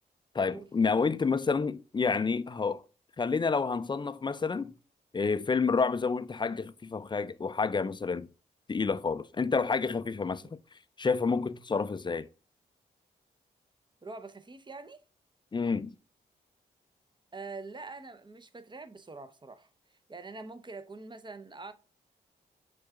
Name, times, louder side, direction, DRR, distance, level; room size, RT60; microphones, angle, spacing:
voice 1, 0.3-2.8 3.2-4.7 5.1-8.3 8.7-10.4 11.0-12.3 15.5-15.9, left 4 dB, 25° left, 0.4 m, -29 dB
voice 2, 14.0-15.0 17.3-21.7, right 3 dB, 25° right, 0.7 m, -45 dB
6.1 x 2.4 x 3.6 m
supercardioid pair, 40°, 19 cm